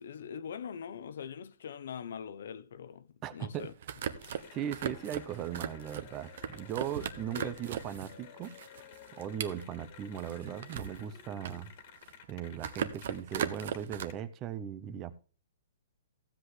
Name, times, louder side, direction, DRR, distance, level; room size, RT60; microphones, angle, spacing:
voice 1, 0.0-3.7 7.3-7.5, left 7 dB, 70° left, 0.8 m, -42 dB
voice 2, 3.2-3.7 4.5-8.5 9.1-11.7 12.3-15.1, right 9 dB, 25° right, 0.7 m, -38 dB
sound 1, 3.6-8.2 8.4-11.0 11.3-12.3 12.6-14.1, right 8 dB, 55° right, 1.1 m, -38 dB
Cheering / Applause, 4.2-14.1, left 8 dB, 40° left, 1.9 m, -53 dB
15.0 x 7.9 x 3.2 m
hypercardioid pair, 160°, 0 cm